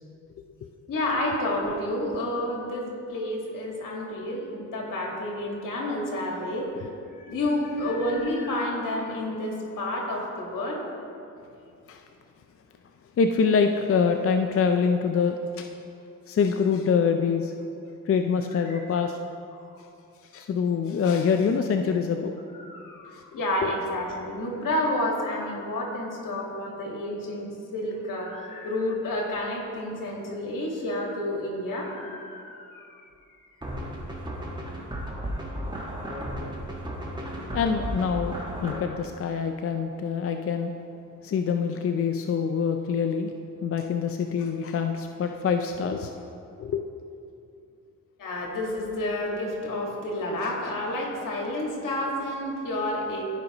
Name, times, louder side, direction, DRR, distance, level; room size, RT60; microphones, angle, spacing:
voice 1, 0.9-6.9 7.2-10.8 18.6-18.8 22.5-32.8 48.2-53.2, left 1 dB, 75° left, -1 dB, 1.8 m, -30 dB
voice 2, 13.2-15.7 16.3-17.5 18.1-19.2 20.3-22.4 23.6-23.7 37.5-38.3 38.6-40.7 41.2-43.3 43.6-46.1 46.6-46.8, left 6 dB, 45° left, 5 dB, 0.5 m, -25 dB
sound 1, 33.6-38.8, equal, 15° right, 1.6 m, -34 dB
14.5 x 5.2 x 2.9 m, 2.6 s
cardioid pair, 70°, 33 cm